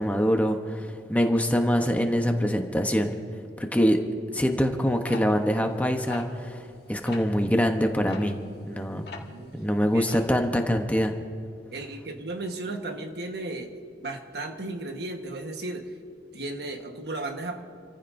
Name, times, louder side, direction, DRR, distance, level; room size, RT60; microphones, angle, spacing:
voice 1, 0.0-3.1 3.6-4.0 4.3-6.6 6.9-8.4 8.6-9.1 9.6-11.1, equal, 10° left, 4 dB, 0.9 m, -24 dB
sound 1, 5.1-6.8 7.1-7.3 8.1-9.5 9.7-10.4, left 4 dB, 65° left, 1.7 m, -41 dB
voice 2, 9.3-9.7 9.9-10.3 11.7-16.0 16.3-17.6, right 2 dB, 65° right, 4 dB, 1.4 m, -35 dB
29.5 x 14.5 x 2.7 m, 2.4 s
head